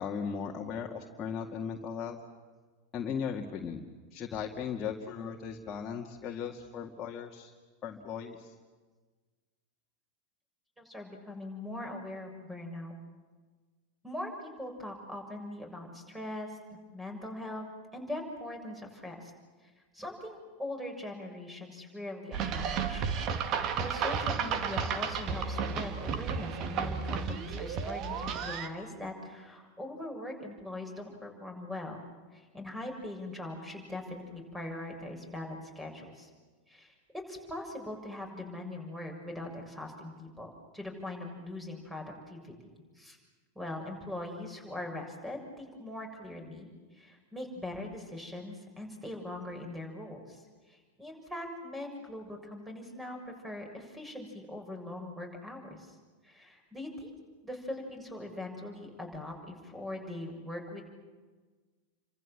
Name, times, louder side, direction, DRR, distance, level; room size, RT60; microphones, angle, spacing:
voice 1, 0.0-2.2 2.9-3.8 4.1-7.5 7.8-8.5, left 7 dB, 30° left, 0 dB, 2.2 m, -37 dB
voice 2, 10.8-12.9 14.0-17.6 17.9-19.3 19.6-23.0 23.4-36.3 36.7-43.2 43.5-56.0 56.2-57.1 57.4-60.8, left 1 dB, 5° right, 3 dB, 6.9 m, -41 dB
sound 1, 22.3-28.7, right 6 dB, 40° right, 2.2 m, -33 dB
29.5 x 25.5 x 7.6 m, 1.4 s
figure-of-eight pair, 90°, 0 cm